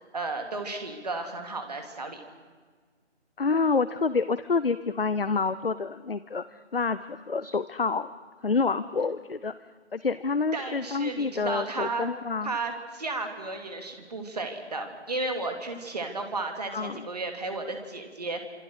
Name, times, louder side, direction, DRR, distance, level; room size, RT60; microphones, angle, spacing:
voice 1, 0.1-2.2 10.5-12.1 12.4-18.4, right 3 dB, 35° right, 5 dB, 2.7 m, -33 dB
voice 2, 3.4-8.1 8.4-9.5 9.9-12.5 16.7-17.1, left 4 dB, 55° left, 14 dB, 0.8 m, -28 dB
27.0 x 26.5 x 6.5 m, 1.5 s
figure-of-eight pair, 160°, 35 cm